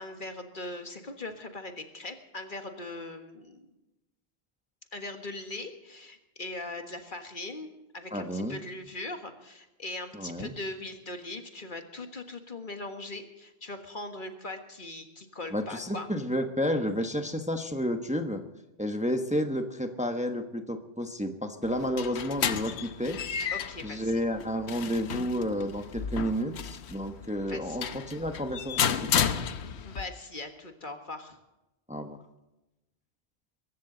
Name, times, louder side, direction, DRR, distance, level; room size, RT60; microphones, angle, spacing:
voice 1, 0.0-3.7 4.9-7.7 7.9-16.1 23.5-24.2 27.5-27.8 29.8-31.4, left 2 dB, 50° left, 6 dB, 1.7 m, -40 dB
voice 2, 8.1-8.6 10.1-10.5 15.5-18.4 18.8-23.2 23.8-29.3 31.9-32.2, equal, 5° right, 6 dB, 1.1 m, -31 dB
sound 1, 21.6-30.0, left 7 dB, 80° left, 1.1 m, -32 dB
23.5 x 13.5 x 4.0 m, 0.96 s
omnidirectional pair, 1.1 m